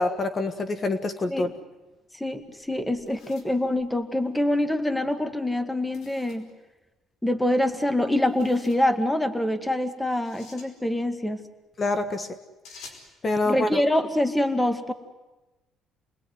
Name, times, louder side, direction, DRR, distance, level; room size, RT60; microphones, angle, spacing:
voice 1, 0.0-1.5 11.8-12.3 13.2-13.8, left 2 dB, 35° left, 10 dB, 1.6 m, -26 dB
voice 2, 2.2-6.5 7.2-11.4 13.5-14.9, left 1 dB, 5° left, 10 dB, 2.0 m, -25 dB
sound 1, 2.4-4.5 5.9-6.5 8.2-8.9 10.1-10.7 12.6-13.1, left 4 dB, 75° left, 4.8 m, -50 dB
28.5 x 20.5 x 9.7 m, 1.1 s
cardioid pair, 100°, 0 cm